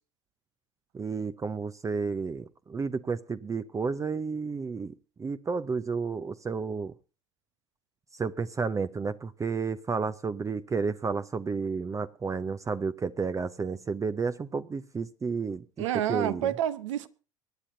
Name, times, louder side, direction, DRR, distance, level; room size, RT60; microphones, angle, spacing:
voice 1, 0.9-6.9 8.1-16.5, right 5 dB, 20° right, 0.6 m, -31 dB
voice 2, 15.8-17.1, right 11 dB, 70° right, 0.9 m, -29 dB
24.5 x 9.9 x 2.7 m
hypercardioid pair, 75°, 16 cm